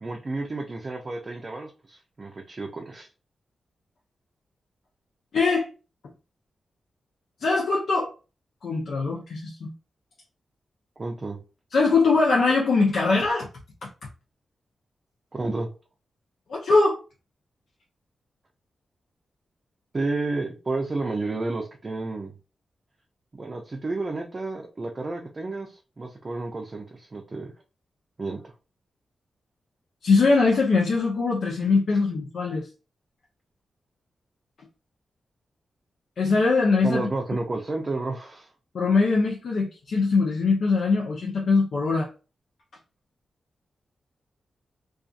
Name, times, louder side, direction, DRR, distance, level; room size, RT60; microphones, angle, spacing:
voice 1, 0.0-3.1 11.0-11.4 15.3-15.7 19.9-22.3 23.3-27.5 28.2-28.4 36.8-38.5, right 3 dB, 35° right, 0.4 m, -31 dB
voice 2, 5.3-5.7 7.4-8.1 8.6-9.7 11.7-13.5 13.8-13.9 16.5-17.0 30.0-32.7 36.2-37.1 38.7-42.1, left 4 dB, 75° left, 0.6 m, -22 dB
2.6 x 2.4 x 2.4 m
cardioid pair, 75°, 0 cm